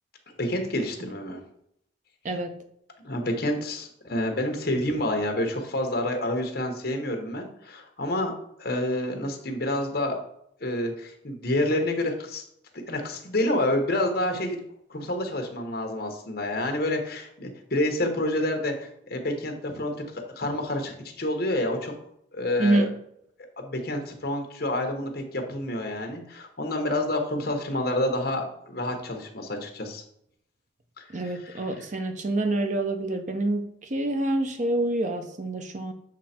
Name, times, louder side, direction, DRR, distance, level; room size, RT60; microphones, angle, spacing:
voice 1, 0.4-1.4 3.0-8.3 8.6-10.2 10.6-12.4 12.9-14.6 14.9-20.0 20.4-21.9 22.3-22.9 23.6-30.0 31.0-31.9, left 1 dB, 60° left, 3 dB, 1.1 m, -28 dB
voice 2, 22.6-22.9 31.1-35.9, right 1 dB, 45° right, 6 dB, 0.7 m, -27 dB
7.4 x 3.3 x 4.3 m, 0.72 s
head